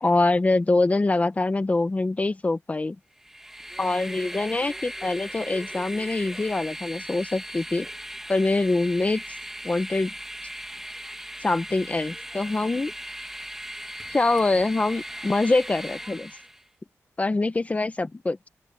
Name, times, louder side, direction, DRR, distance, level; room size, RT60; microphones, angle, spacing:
voice 1, 0.0-3.0 3.8-7.9 8.3-9.2 9.6-10.1 11.4-12.9 14.1-16.3 17.2-18.5, left 2 dB, 25° left, 1.2 m, -24 dB
Train, 3.2-16.6, right 1 dB, 5° right, 1.7 m, -38 dB
open air
wide cardioid pair, 115°, 5 cm